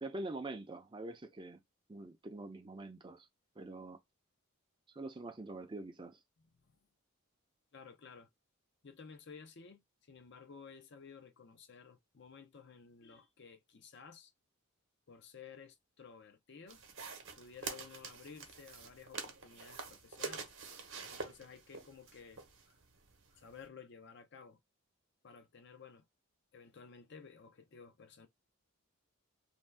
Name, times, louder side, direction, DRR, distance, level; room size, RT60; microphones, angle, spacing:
voice 1, 0.0-1.6 1.9-3.3 3.6-4.0 4.9-6.2, right 2 dB, 20° right, 0.5 m, -44 dB
voice 2, 7.7-8.3 8.8-14.3 15.1-16.8 17.3-20.5 21.1-22.8 23.3-24.6 25.2-26.1 26.5-28.3, left 5 dB, 55° left, 0.5 m, -54 dB
sound 1, 16.7-23.6, right 4 dB, 60° right, 0.8 m, -46 dB
2.6 x 2.2 x 3.3 m
head